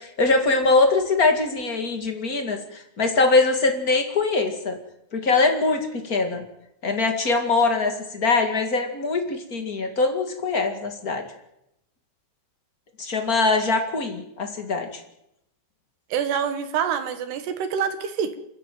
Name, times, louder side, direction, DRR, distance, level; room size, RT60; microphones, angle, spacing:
voice 1, 0.0-4.8 5.1-6.4 6.8-11.2 13.0-15.0, left 3 dB, 45° left, 5 dB, 1.2 m, -22 dB
voice 2, 16.1-18.4, right 7 dB, 70° right, 10 dB, 3.4 m, -26 dB
29.5 x 11.0 x 9.2 m, 0.83 s
omnidirectional pair, 5.1 m